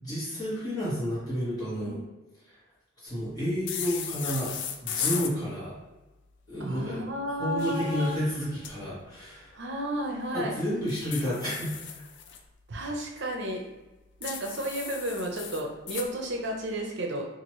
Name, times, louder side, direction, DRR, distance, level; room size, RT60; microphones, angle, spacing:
voice 1, 0.0-2.0 3.0-4.5 4.8-5.8 6.5-7.0 7.4-9.5 10.3-11.8, equal, 20° left, -9 dB, 1.4 m, -31 dB
sound 1, 3.7-5.3 7.4-8.7 10.9-12.4 14.2-16.1, left 8 dB, 60° left, 0.3 m, -36 dB
voice 2, 6.6-8.2 9.5-10.5 12.7-13.7 14.2-17.3, equal, 60° right, 1 dB, 0.6 m, -32 dB
2.8 x 2.5 x 3.0 m, 1.1 s
head